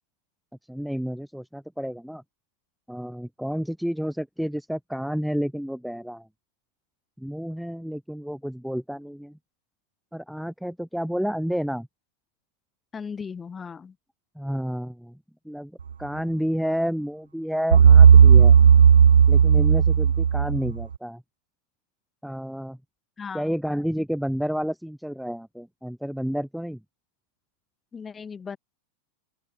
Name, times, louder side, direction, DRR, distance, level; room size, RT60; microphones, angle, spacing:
voice 1, 0.7-2.2 2.9-6.3 7.2-9.4 10.1-11.9 14.4-15.2 15.4-15.7 16.0-18.6 19.3-21.2 22.2-22.8 23.3-26.8, equal, ahead, 1.0 m, -30 dB
voice 2, 12.9-14.0 23.2-23.6 27.9-28.6, left 6 dB, 15° left, 4.4 m, -37 dB
sound 1, 17.7-20.8, right 7 dB, 70° right, 0.5 m, -13 dB
open air
figure-of-eight pair, 90°, 0 cm